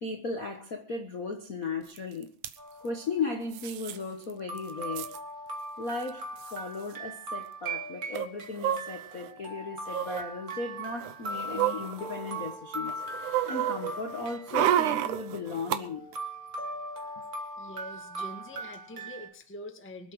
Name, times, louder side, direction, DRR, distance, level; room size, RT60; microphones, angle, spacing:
voice 1, 0.0-2.3 2.8-5.1 5.8-6.2 6.5-12.9 13.5-16.1, left 4 dB, 80° left, 0.7 m, -36 dB
sound 1, 2.0-2.1 2.2-2.5 3.5-4.0 4.3-4.4 4.6-5.2 6.0-6.1 6.4-6.6 8.1-9.3 9.9-10.2 10.9-12.5 12.9-15.8 16.1-16.2, right 12 dB, 70° right, 2.1 m, -30 dB
sound 2, 2.6-3.1 4.0-4.1 4.5-19.3, right 2 dB, 30° right, 2.3 m, -39 dB
voice 2, 17.6-20.1, left 1 dB, 10° left, 0.6 m, -44 dB
24.0 x 8.5 x 4.9 m
omnidirectional pair, 3.9 m